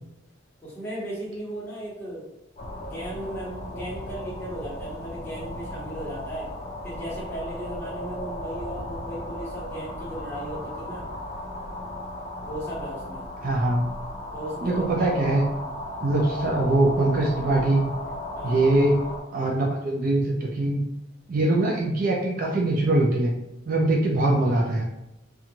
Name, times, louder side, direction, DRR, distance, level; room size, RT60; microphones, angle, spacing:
voice 1, 0.6-2.2 2.8-6.5 6.8-11.1 12.4-13.2 14.3-15.1 18.3-18.6, right 1 dB, 10° left, -9 dB, 1.2 m, -36 dB
sound 1, 2.6-19.2, left 1 dB, 35° left, 0.5 m, -36 dB
voice 2, 13.4-13.8 14.6-15.4 16.0-17.9 18.4-19.0 19.3-20.8 21.3-23.4 23.7-24.8, right 2 dB, 45° right, -1 dB, 0.4 m, -22 dB
2.5 x 2.3 x 2.9 m, 0.89 s
head